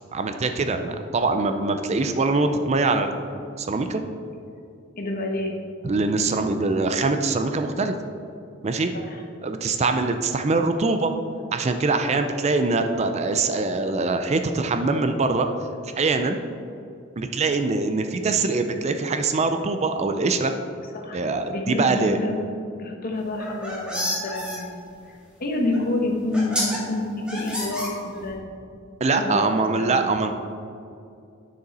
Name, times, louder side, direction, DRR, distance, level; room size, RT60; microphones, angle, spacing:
voice 1, 0.1-4.0 5.8-7.9 8.6-8.9 9.4-11.1 11.5-15.5 16.0-16.4 17.2-20.5 21.1-22.2 29.0-30.3, right 3 dB, 30° right, 7 dB, 0.4 m, -23 dB
voice 2, 5.0-5.6 8.9-9.2 12.1-12.2 20.9-21.2 21.5-22.4 22.8-28.4 29.1-30.1, left 2 dB, 45° left, 1 dB, 1.2 m, -28 dB
sound 1, 23.3-24.6 25.7-25.8 26.3-26.8 27.3-28.3, equal, 5° right, 1.7 m, -29 dB
9.5 x 6.7 x 4.1 m, 2.5 s
head